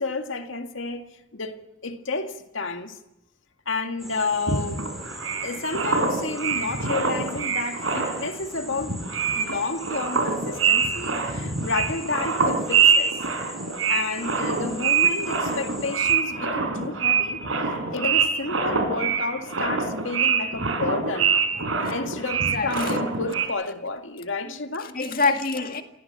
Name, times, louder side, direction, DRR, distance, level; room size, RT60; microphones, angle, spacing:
voice 1, 0.0-3.0 3.7-4.9 5.4-9.1 9.3-13.2 13.9-17.4 17.9-21.4 21.9-24.9, left 3 dB, 70° left, 1.9 m, -31 dB
sound 1, 4.0-16.2, equal, ahead, 3.3 m, -42 dB
sound 2, 4.5-8.4 8.7-23.5, right 5 dB, 85° right, 4.8 m, -24 dB
voice 2, 22.3-23.0 24.4-25.8, left 3 dB, 45° left, 2.0 m, -27 dB
27.5 x 17.0 x 7.4 m
head